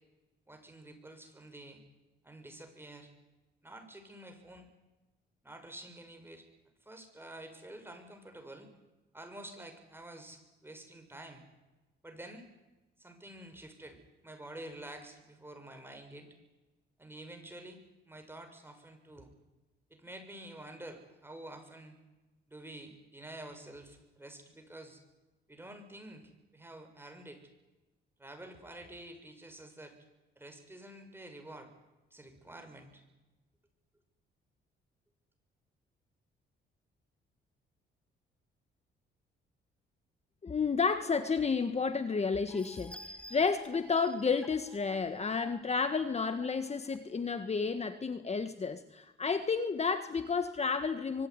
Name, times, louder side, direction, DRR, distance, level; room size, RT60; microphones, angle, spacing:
voice 1, 0.5-1.8 2.2-3.1 3.6-4.7 5.4-6.4 6.8-8.7 9.1-11.4 12.0-12.5 13.0-16.3 17.0-17.8 18.1-19.3 19.9-22.0 22.5-25.0 25.5-26.2 26.5-27.4 28.2-29.9 30.4-31.7 32.1-33.0, right 1 dB, 10° right, 5 dB, 6.5 m, -49 dB
voice 2, 40.4-51.3, left 5 dB, 35° left, 10 dB, 1.6 m, -31 dB
sound 1, 42.5-47.0 47.5-47.6 47.9-48.0, equal, 5° left, 2.2 m, -52 dB
25.0 x 22.5 x 9.8 m, 1.1 s
cardioid pair, 90°, 20 cm